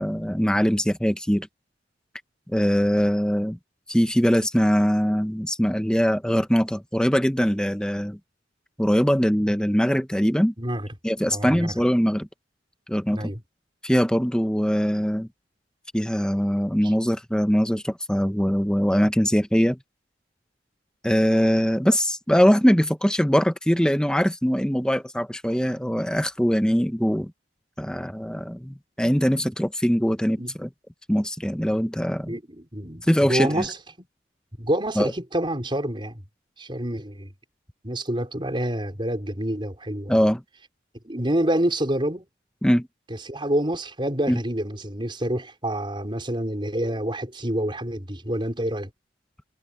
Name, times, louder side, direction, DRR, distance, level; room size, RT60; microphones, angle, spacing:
voice 1, 0.0-1.5 2.5-3.6 3.9-8.2 8.8-10.5 11.0-12.3 12.9-13.2 13.8-15.3 15.9-19.8 21.0-27.3 27.8-30.7 31.1-32.3 33.1-33.6 35.0-35.1 40.1-40.4 42.6-42.9 44.3-44.4, equal, 5° left, 1.2 m, -22 dB
voice 2, 10.6-10.9 11.3-11.7 13.1-13.4 16.8-16.9 30.4-30.6 32.3-34.1 34.6-36.2 36.6-37.3 37.8-40.2 41.0-42.3 43.1-48.9, right 1 dB, 30° right, 5.0 m, -27 dB
head